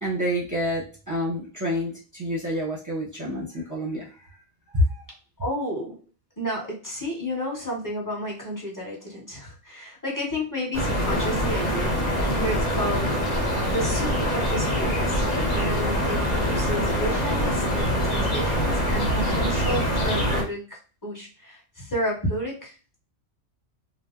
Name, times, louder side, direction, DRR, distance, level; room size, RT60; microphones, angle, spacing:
voice 1, 0.0-4.1 4.7-5.0, equal, 15° right, -5 dB, 0.8 m, -27 dB
voice 2, 5.4-6.0 6.4-15.2 15.5-22.8, equal, 15° left, -4 dB, 1.0 m, -31 dB
sound 1, 10.7-20.4, equal, 35° left, 1.0 m, -24 dB
2.8 x 2.0 x 3.6 m, 0.35 s
omnidirectional pair, 1.3 m